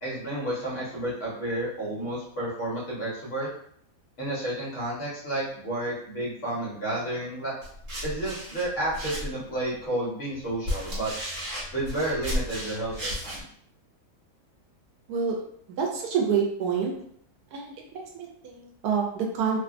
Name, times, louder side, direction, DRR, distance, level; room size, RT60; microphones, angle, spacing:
voice 1, 0.0-3.5 4.2-7.5 8.0-11.1 11.7-13.4, right 1 dB, 50° left, -7 dB, 1.2 m, -31 dB
sound 1, 7.6-9.6 10.3-13.4, equal, 55° right, 1.3 m, -33 dB
voice 2, 15.8-16.9 17.5-19.6, right 6 dB, 75° right, 0 dB, 1.1 m, -27 dB
3.0 x 2.3 x 2.4 m, 0.65 s
omnidirectional pair, 1.8 m